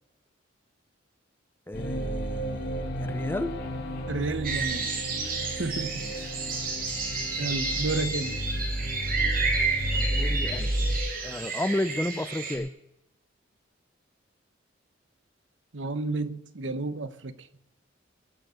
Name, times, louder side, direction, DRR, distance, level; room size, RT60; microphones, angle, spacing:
sound 1, 1.7-11.0, equal, 60° left, 3.3 m, -32 dB
voice 1, 1.7-3.6 5.9-6.1 10.0-10.7 11.2-12.7, left 1 dB, 10° left, 0.5 m, -32 dB
voice 2, 4.1-4.9 5.5-6.0 6.5-6.7 7.4-8.4 15.7-17.3, right 3 dB, 70° right, 1.0 m, -31 dB
sound 2, 4.4-12.6, right 4 dB, 50° right, 3.5 m, -31 dB
21.0 x 7.0 x 6.4 m
head